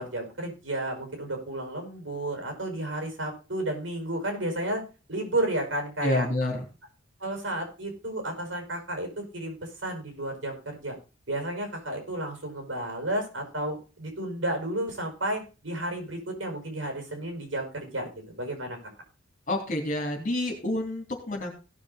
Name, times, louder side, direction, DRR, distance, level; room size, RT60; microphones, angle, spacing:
voice 1, 0.0-4.8 5.1-6.3 7.2-11.0 11.3-18.8, right 1 dB, 75° right, 4 dB, 5.1 m, -32 dB
voice 2, 6.0-6.6 19.5-21.5, left 1 dB, 45° left, 3 dB, 3.2 m, -28 dB
16.5 x 6.6 x 4.1 m, 0.32 s
head